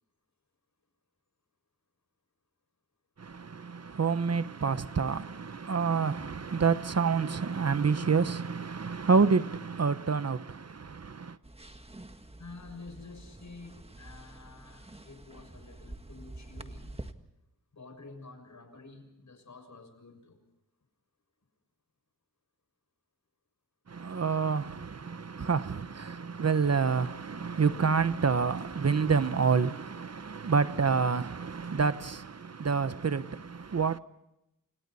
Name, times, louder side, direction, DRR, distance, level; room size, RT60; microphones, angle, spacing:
voice 1, 3.2-11.4 23.9-34.0, right 5 dB, 50° right, 0.9 m, -28 dB
sound 1, 11.4-17.1, right 2 dB, 15° right, 1.7 m, -47 dB
voice 2, 12.4-17.1 17.7-20.4, left 3 dB, 60° left, 6.4 m, -49 dB
28.5 x 28.5 x 4.2 m
wide cardioid pair, 90°, 34 cm